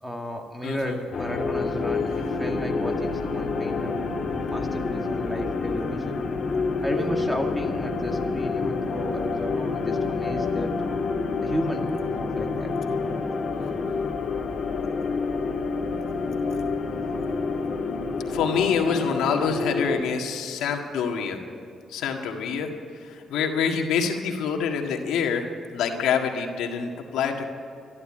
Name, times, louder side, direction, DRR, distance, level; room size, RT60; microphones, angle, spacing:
voice 1, 0.0-4.0 4.3-6.2 6.8-10.7 11.4-12.7 13.6-13.7, equal, 5° right, 3 dB, 2.1 m, -33 dB
voice 2, 0.6-1.0 18.3-21.4 21.9-22.7 23.0-25.5 25.7-27.4, left 6 dB, 85° left, 3 dB, 1.7 m, -26 dB
sound 1, 1.1-20.0, left 4 dB, 50° left, 1.8 m, -28 dB
13.5 x 12.0 x 8.7 m, 2.4 s
cardioid pair, 90°, 0 cm